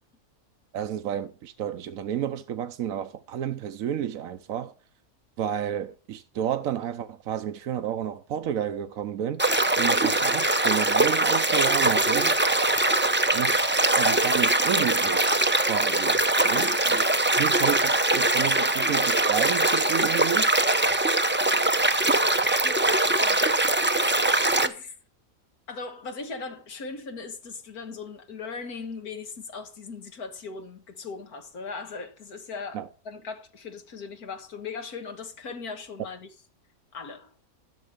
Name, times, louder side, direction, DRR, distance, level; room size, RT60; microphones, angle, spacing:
voice 1, 0.7-4.7 5.4-9.4 9.8-12.4 13.3-13.6 13.9-15.3 15.7-17.0 17.4-20.5 32.7-32.9, right 9 dB, 70° right, 1.1 m, -31 dB
sound 1, 9.4-24.7, right 2 dB, 15° right, 0.4 m, -22 dB
voice 2, 16.4-16.8 22.6-23.5 24.6-25.0 25.7-36.3 36.9-37.3, left 4 dB, 85° left, 2.1 m, -39 dB
12.0 x 7.0 x 6.7 m
omnidirectional pair, 1.5 m